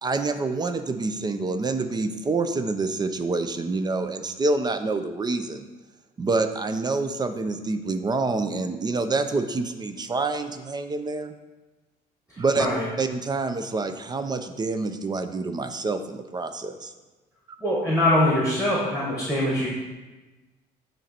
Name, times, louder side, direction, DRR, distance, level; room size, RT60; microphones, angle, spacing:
voice 1, 0.0-5.7 6.2-11.3 12.4-12.7 13.0-16.9, right 3 dB, 25° right, 9 dB, 0.4 m, -27 dB
voice 2, 17.6-19.7, left 1 dB, 5° right, -6 dB, 1.6 m, -22 dB
9.0 x 3.1 x 4.3 m, 1.2 s
cardioid pair, 110°, 17 cm